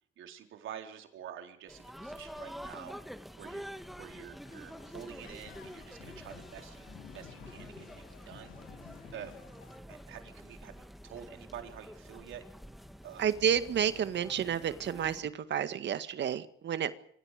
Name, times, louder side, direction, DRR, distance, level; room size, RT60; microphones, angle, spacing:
voice 1, 0.2-3.0 3.4-3.6 3.9-6.9 7.1-8.5 9.1-9.3 9.9-12.4 13.0-13.3, right 9 dB, 80° right, 5 dB, 4.0 m, -48 dB
sound 1, 1.7-15.2, equal, ahead, 2.0 m, -48 dB
sound 2, 4.4-9.8, left 9 dB, 75° left, 2.7 m, -53 dB
voice 2, 13.2-16.9, right 8 dB, 65° right, 11 dB, 1.8 m, -30 dB
26.5 x 26.5 x 5.1 m, 0.64 s
cardioid pair, 90°, 20 cm